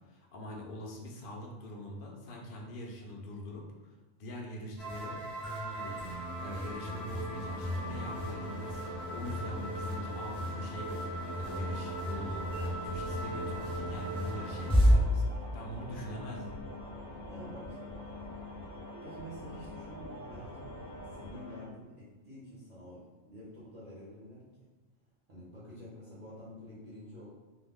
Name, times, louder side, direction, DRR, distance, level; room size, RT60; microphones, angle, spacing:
voice 1, 0.1-5.2 5.7-6.0 6.4-16.6, equal, 60° left, -1 dB, 0.6 m, -43 dB
sound 1, 4.8-14.9, equal, 10° left, 0.4 m, -33 dB
sound 2, 7.5-21.7, left 3 dB, 80° left, 1.0 m, -47 dB
sound 3, 11.4-21.4, right 2 dB, 75° right, 0.9 m, -48 dB
voice 2, 17.3-18.5 19.0-20.8 21.1-24.4 25.3-27.3, equal, 40° right, -10 dB, 0.6 m, -49 dB
2.4 x 2.1 x 3.5 m, 1.2 s
omnidirectional pair, 1.3 m